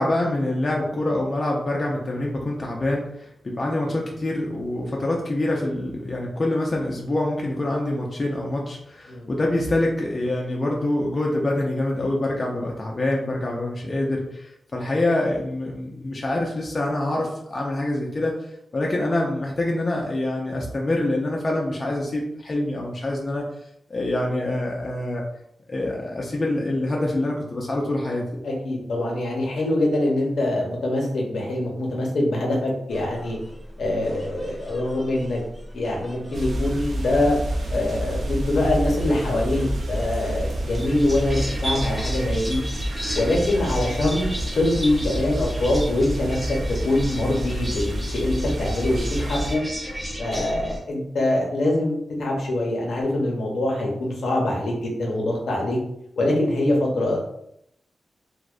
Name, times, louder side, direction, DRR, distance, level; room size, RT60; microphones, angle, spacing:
voice 1, 0.0-18.3 18.7-23.4 23.9-25.2 25.7-28.4, left 1 dB, 40° left, -2 dB, 0.4 m, -25 dB
voice 2, 28.4-33.4 33.8-35.4 35.7-37.3 37.7-42.6 43.1-44.3 44.5-46.4 46.8-49.6 50.2-55.8 56.2-57.3, left 1 dB, 75° left, -1 dB, 0.7 m, -24 dB
sound 1, 32.9-50.8, equal, 15° right, 0.7 m, -36 dB
sound 2, 36.3-49.6, equal, 65° right, 0.4 m, -28 dB
2.5 x 2.1 x 2.4 m, 0.76 s
wide cardioid pair, 95°, 0 cm